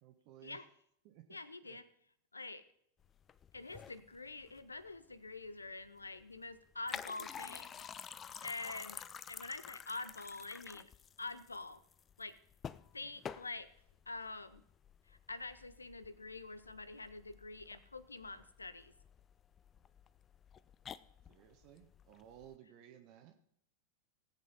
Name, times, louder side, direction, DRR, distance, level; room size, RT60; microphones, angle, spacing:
voice 1, 0.0-0.6 1.0-1.2 1.6-1.8 21.3-23.3, right 11 dB, 45° right, 5 dB, 1.2 m, -57 dB
voice 2, 1.3-1.9 2.3-2.6 3.5-9.0 9.3-10.9 11.2-11.8 12.2-12.4 12.9-13.7 14.1-14.6 15.1-18.9, left 3 dB, 80° left, 15 dB, 0.7 m, -46 dB
sound 1, 3.0-22.6, left 8 dB, 25° left, 0.4 m, -51 dB
17.0 x 8.2 x 4.2 m, 0.71 s
figure-of-eight pair, 90°, 0 cm